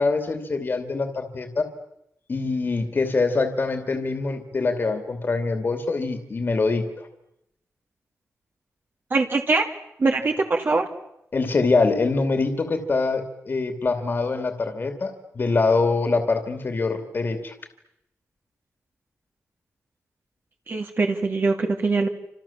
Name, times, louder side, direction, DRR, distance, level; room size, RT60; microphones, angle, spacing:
voice 1, 0.0-1.7 2.3-7.1 11.3-17.5, left 3 dB, 40° left, 7 dB, 2.7 m, -24 dB
voice 2, 9.1-9.7 10.0-10.9 20.7-22.1, right 3 dB, 45° right, 3 dB, 2.4 m, -22 dB
29.5 x 27.0 x 7.4 m, 0.82 s
wide cardioid pair, 150°, 5 cm